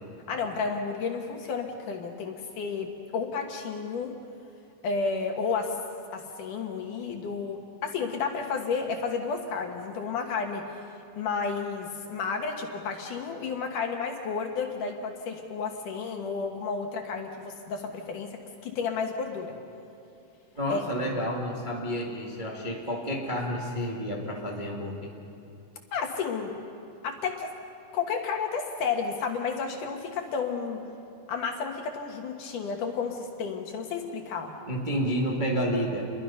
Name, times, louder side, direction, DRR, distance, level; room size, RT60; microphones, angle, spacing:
voice 1, 0.3-4.1 4.8-5.8 6.1-10.7 11.2-19.6 20.7-20.8 25.9-26.5 27.0-27.5 27.9-30.8 31.3-34.5, left 5 dB, 60° left, 3 dB, 2.6 m, -32 dB
voice 2, 20.6-25.1 34.7-36.0, equal, 20° right, -2 dB, 1.3 m, -30 dB
29.5 x 22.5 x 5.6 m, 2.7 s
omnidirectional pair, 4.6 m